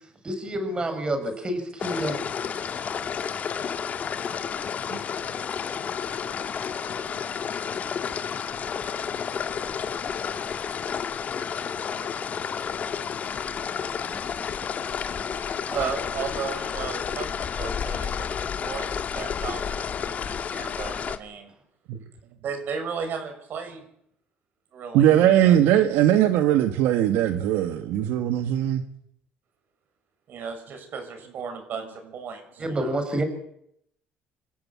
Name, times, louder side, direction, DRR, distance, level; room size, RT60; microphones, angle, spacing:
voice 1, 0.2-2.2 14.1-14.2 32.6-33.2, right 1 dB, 25° right, 8 dB, 5.7 m, -28 dB
sound 1, 1.8-21.2, left 7 dB, 40° left, 2.0 m, -31 dB
voice 2, 15.7-18.9 19.1-21.5 22.4-23.9 24.7-25.6 30.3-33.0, right 6 dB, 55° right, 7 dB, 7.0 m, -35 dB
voice 3, 24.9-28.8, right 11 dB, 85° right, 7 dB, 1.7 m, -20 dB
27.0 x 14.5 x 8.7 m, 0.74 s
cardioid pair, 120°, 4 cm